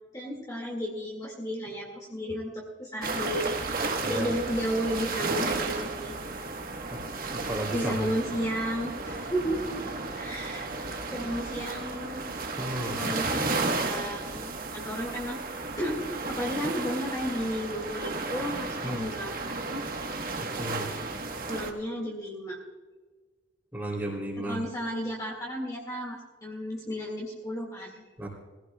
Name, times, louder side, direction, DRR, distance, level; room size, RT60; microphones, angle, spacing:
voice 1, 0.1-3.6 4.1-6.2 7.7-9.6 10.1-10.7 11.1-12.2 12.9-13.4 13.7-15.4 15.8-16.0 16.3-19.3 19.7-19.9 21.5-22.6 24.4-28.0, equal, 20° left, -2 dB, 2.0 m, -33 dB
sound 1, 3.0-21.7, right 3 dB, 50° right, 1.3 m, -33 dB
voice 2, 4.0-4.3 6.9-8.1 12.6-13.0 18.8-19.0 20.6-20.9 23.7-24.6 28.2-28.3, right 1 dB, 10° right, -2 dB, 3.1 m, -34 dB
21.0 x 15.5 x 2.3 m, 1.4 s
head